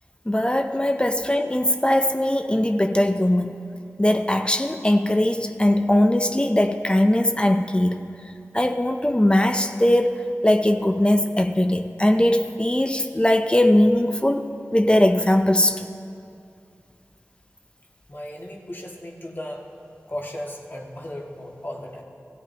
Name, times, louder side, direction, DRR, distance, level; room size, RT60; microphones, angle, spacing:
voice 1, 0.3-3.6 4.0-8.1 8.5-15.9, left 1 dB, 20° left, 6 dB, 0.7 m, -20 dB
voice 2, 18.1-19.7 20.1-22.0, left 1 dB, 40° left, -2 dB, 2.2 m, -35 dB
26.0 x 14.0 x 2.9 m, 2.4 s
wide cardioid pair, 50°, 5 cm